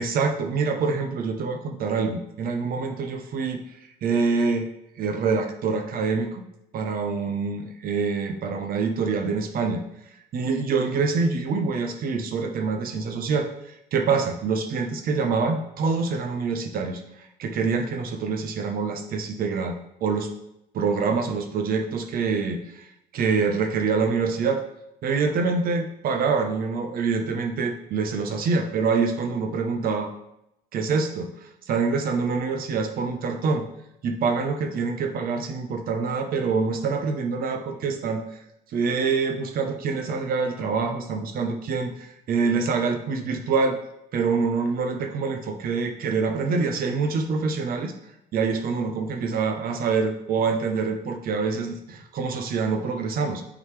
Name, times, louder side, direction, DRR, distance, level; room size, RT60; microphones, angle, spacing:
voice 1, 0.0-3.6 4.0-4.7 5.0-6.4 6.7-9.8 10.3-13.5 13.9-17.0 17.4-20.3 20.7-22.9 23.1-24.6 25.0-30.1 30.7-31.3 31.7-33.7 34.0-38.4 38.7-43.8 44.1-47.9 48.3-53.4, right 4 dB, 60° right, 4 dB, 0.9 m, -25 dB
9.2 x 4.0 x 3.3 m, 0.84 s
cardioid pair, 110°, 17 cm